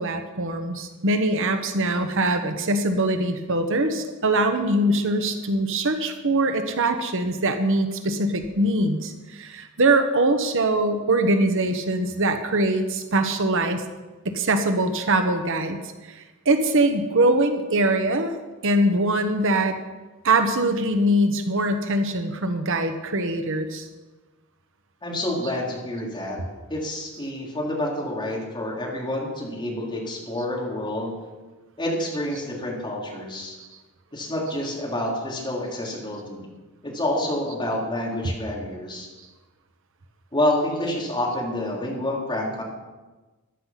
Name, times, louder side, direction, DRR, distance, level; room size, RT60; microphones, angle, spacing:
voice 1, 0.0-13.8 14.2-15.8 16.1-18.3 18.6-19.8 20.2-23.8 25.4-25.5, right 1 dB, 65° right, 7 dB, 1.2 m, -22 dB
voice 2, 25.0-26.4 26.7-31.2 31.8-33.6 34.1-36.5 36.8-39.1 40.3-42.6, left 1 dB, 20° left, -3 dB, 3.6 m, -28 dB
14.5 x 11.5 x 5.8 m, 1.2 s
head